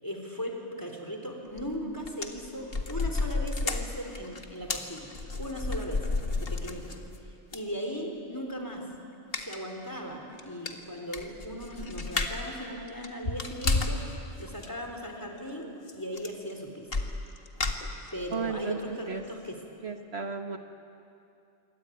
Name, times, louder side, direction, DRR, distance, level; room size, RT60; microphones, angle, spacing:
voice 1, 0.0-5.1 5.4-8.9 9.4-16.9 18.1-19.6, equal, 15° left, 2 dB, 3.8 m, -38 dB
sound 1, 1.6-1.8 2.0-7.2 7.5-7.6 9.3-9.6 10.0-10.1 10.4-10.5 10.7-12.5 12.9-14.1 14.4-14.7 15.9-16.0 16.2-16.5 16.9-18.3 18.8-18.9 19.2-19.3, left 3 dB, 55° left, 2.0 m, -31 dB
voice 2, 18.3-19.2 19.8-20.6, right 5 dB, 65° right, 5 dB, 1.6 m, -34 dB
26.5 x 23.5 x 9.4 m, 2.6 s
omnidirectional pair, 1.2 m